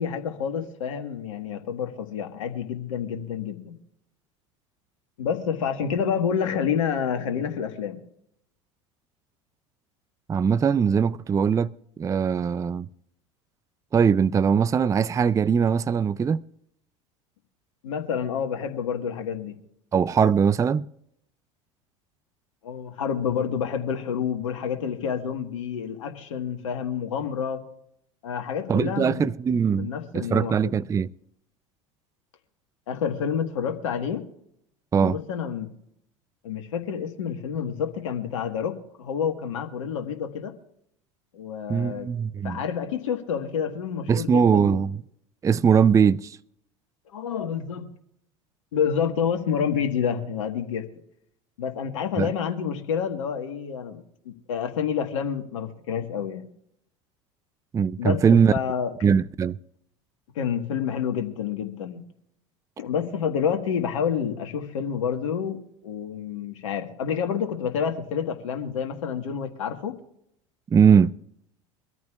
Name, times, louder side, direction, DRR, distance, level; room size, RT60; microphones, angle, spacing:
voice 1, 0.0-3.8 5.2-8.0 17.8-19.6 22.6-27.6 28.2-29.3 29.7-30.8 32.9-34.3 35.0-35.7 36.4-40.5 41.3-42.1 42.4-44.8 47.1-47.9 48.7-50.8 51.6-56.5 58.0-58.9 60.3-62.0 62.8-70.0, left 7 dB, 75° left, 1.5 m, -28 dB
voice 2, 10.3-11.7 12.0-12.9 13.9-16.4 19.9-20.9 28.7-31.1 34.9-35.2 41.7-42.6 44.1-45.0 45.4-46.4 52.2-52.3 57.7-58.5 59.0-59.6 70.7-71.1, right 7 dB, 20° right, 0.4 m, -21 dB
24.5 x 14.0 x 2.4 m
hypercardioid pair, 80°, 16 cm